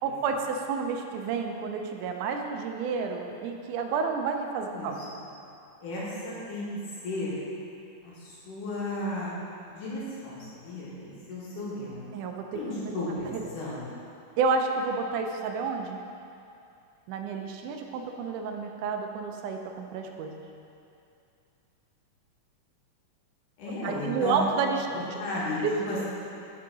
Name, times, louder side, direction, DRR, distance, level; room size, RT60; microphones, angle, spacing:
voice 1, 0.0-5.0 12.1-12.9 13.3-13.4 14.4-16.0 17.1-20.4 23.8-24.9 25.6-25.7, right 5 dB, 80° right, 4 dB, 2.1 m, -30 dB
voice 2, 5.8-6.6 7.0-7.3 8.0-9.4 9.7-12.1 12.5-13.8 23.6-24.4 24.9-25.6 25.9-26.0, left 1 dB, 85° left, -8 dB, 3.3 m, -34 dB
8.3 x 6.6 x 3.9 m, 2.6 s
omnidirectional pair, 3.6 m